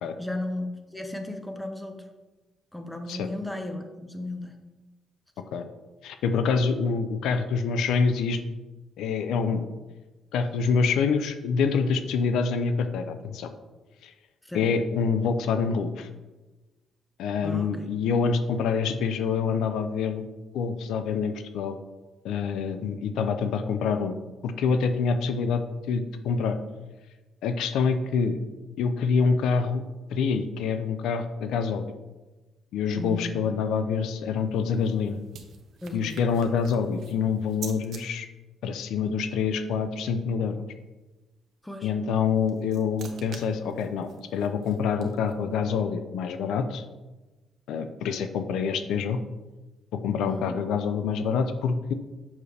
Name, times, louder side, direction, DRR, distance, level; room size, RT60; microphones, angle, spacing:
voice 1, 0.2-2.0 2.7-4.5 14.4-14.7 17.4-17.9 33.0-33.3 35.8-36.2 41.6-41.9 50.3-50.6, left 1 dB, 5° left, 5 dB, 1.0 m, -35 dB
voice 2, 6.0-8.4 9.0-9.7 10.3-13.5 14.0-14.1 14.5-16.1 17.2-20.3 20.5-21.8 22.2-24.2 24.4-25.6 25.9-26.6 27.4-28.4 28.8-29.8 30.1-31.8 32.7-35.2 35.9-38.3 38.6-40.5 41.8-46.8 47.7-49.2 50.0-51.9, left 5 dB, 85° left, 9 dB, 0.5 m, -26 dB
sound 1, 34.4-38.0 42.2-45.5, right 6 dB, 65° right, 1.0 m, -47 dB
7.2 x 6.3 x 3.3 m, 1.2 s
cardioid pair, 90°, 0 cm